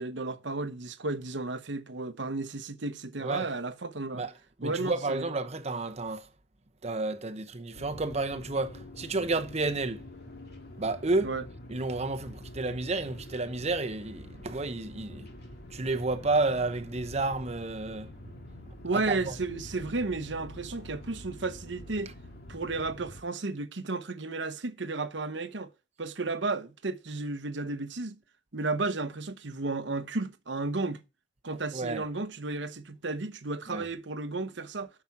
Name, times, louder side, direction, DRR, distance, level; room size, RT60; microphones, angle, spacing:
voice 1, 0.0-4.2 4.6-5.2 11.2-11.4 18.8-22.1 22.5-25.7 26.0-28.2 28.5-31.0 31.4-34.9, right 3 dB, 70° right, 1.0 m, -33 dB
voice 2, 4.6-6.3 6.8-10.0 10.8-11.3 11.7-15.3 15.7-18.1 18.7-19.3 31.7-32.1 33.7-33.9, right 3 dB, 35° right, 0.9 m, -31 dB
sound 1, 7.7-23.2, left 1 dB, 60° left, 2.0 m, -46 dB
9.3 x 6.0 x 6.0 m
head